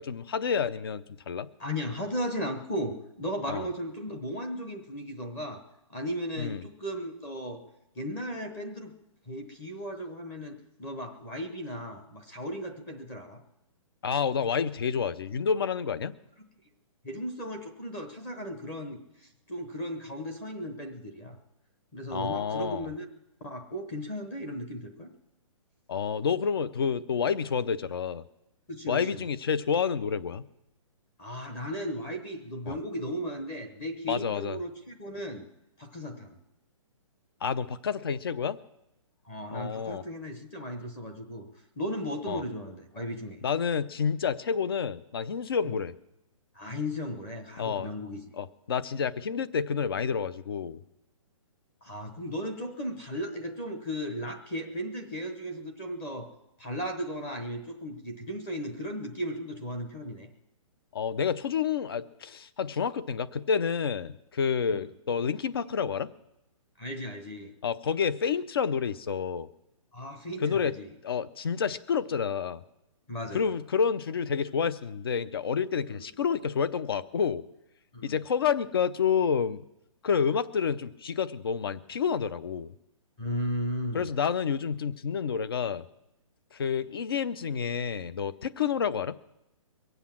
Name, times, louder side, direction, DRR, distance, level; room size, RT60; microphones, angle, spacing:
voice 1, 0.0-1.5 3.5-3.7 6.4-6.6 14.0-16.1 22.1-22.9 25.9-28.2 28.9-30.4 32.7-32.8 34.1-34.6 37.4-38.6 39.5-40.0 42.3-42.4 43.4-45.9 47.6-47.9 48.3-50.8 60.9-66.1 67.6-69.5 70.4-70.7 71.0-72.6 73.3-77.4 78.0-79.6 80.0-82.7 83.9-85.8 86.5-89.1, left 6 dB, 45° left, 17 dB, 0.6 m, -29 dB
voice 2, 1.6-5.6 5.9-7.6 7.9-8.9 9.3-13.4 17.0-21.4 21.9-23.0 23.4-25.1 28.7-29.2 31.2-35.5 35.8-36.4 39.2-41.5 41.8-43.4 45.7-45.8 46.5-48.2 51.8-56.3 56.6-60.3 64.7-64.8 66.8-67.5 69.9-70.9 73.1-73.5 77.9-78.2 83.2-84.1, equal, 10° left, 5 dB, 0.9 m, -36 dB
22.5 x 8.1 x 7.3 m, 0.89 s
hypercardioid pair, 180°, 18 cm